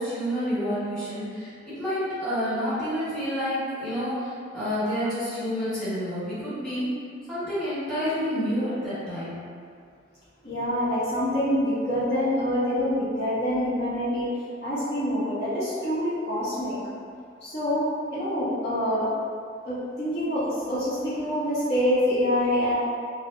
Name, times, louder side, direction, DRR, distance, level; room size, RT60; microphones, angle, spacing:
voice 1, 0.0-6.9 7.3-9.4, equal, 5° left, -15 dB, 1.4 m, -29 dB
voice 2, 10.4-14.3 14.6-16.8 17.4-19.1 19.6-22.7, equal, 65° left, -13 dB, 1.2 m, -26 dB
3.2 x 2.2 x 2.6 m, 2.3 s
head